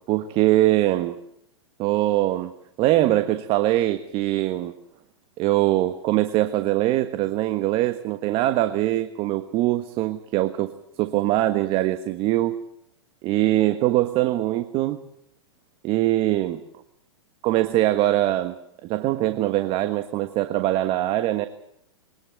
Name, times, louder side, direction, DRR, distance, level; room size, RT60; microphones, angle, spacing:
voice 1, 0.1-1.2 1.8-2.5 2.8-4.7 5.4-12.6 13.2-15.0 15.8-16.6 17.4-18.6 18.8-21.5, right 15 dB, 40° right, 10 dB, 1.4 m, -22 dB
23.0 x 19.5 x 7.7 m, 0.72 s
hypercardioid pair, 105°, 15 cm